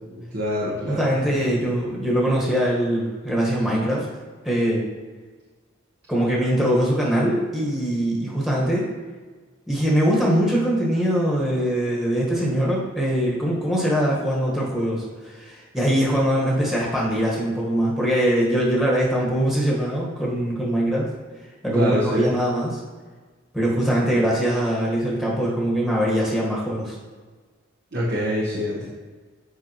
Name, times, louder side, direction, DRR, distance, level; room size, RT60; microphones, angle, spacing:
voice 1, 0.1-1.1 1.4-1.5 21.7-22.3 27.9-28.9, equal, 50° right, -6 dB, 1.0 m, -25 dB
voice 2, 0.9-4.0 4.4-4.8 6.1-8.9 9.7-21.1 21.6-22.8 23.5-27.0, equal, ahead, -5 dB, 1.3 m, -22 dB
7.8 x 5.2 x 3.0 m, 1.4 s
head